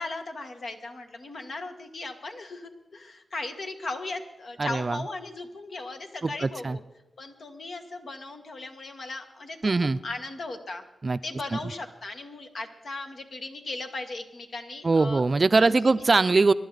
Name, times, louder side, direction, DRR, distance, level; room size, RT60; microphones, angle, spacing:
voice 1, 0.0-6.8 7.2-9.7 10.0-10.8 11.2-15.2 15.6-16.0, left 2 dB, 65° left, 5 dB, 1.5 m, -37 dB
voice 2, 4.6-5.0 6.2-6.8 9.6-10.0 11.0-11.2 11.5-11.6 14.8-16.5, right 3 dB, 40° right, 14 dB, 0.4 m, -22 dB
24.0 x 11.5 x 4.0 m, 0.95 s
wide cardioid pair, 85°, 0 cm